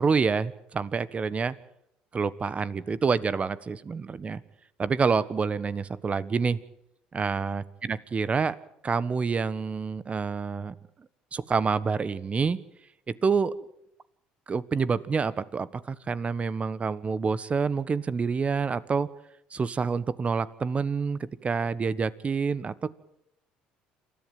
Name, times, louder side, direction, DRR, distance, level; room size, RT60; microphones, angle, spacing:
voice 1, 0.0-1.5 2.1-4.4 4.8-6.6 7.1-8.6 8.8-10.7 11.3-12.6 13.1-13.5 14.5-19.1 19.5-22.9, right 5 dB, 35° right, 17 dB, 1.3 m, -27 dB
27.5 x 14.0 x 9.0 m, 0.79 s
hypercardioid pair, 70°, 4 cm